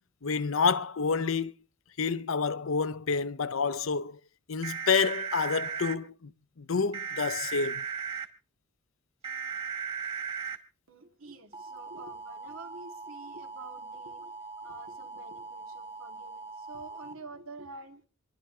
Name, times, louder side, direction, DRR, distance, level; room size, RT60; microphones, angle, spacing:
voice 1, 0.2-1.5 2.0-4.2 4.5-6.3 6.6-7.8, left 5 dB, 75° left, 0.7 m, -28 dB
sound 1, 4.6-5.9 6.9-8.3 9.2-10.6 11.5-17.1, right 6 dB, 30° right, 1.9 m, -38 dB
voice 2, 10.9-14.3 14.6-18.0, right 3 dB, 85° right, 2.7 m, -48 dB
27.5 x 11.5 x 3.3 m
head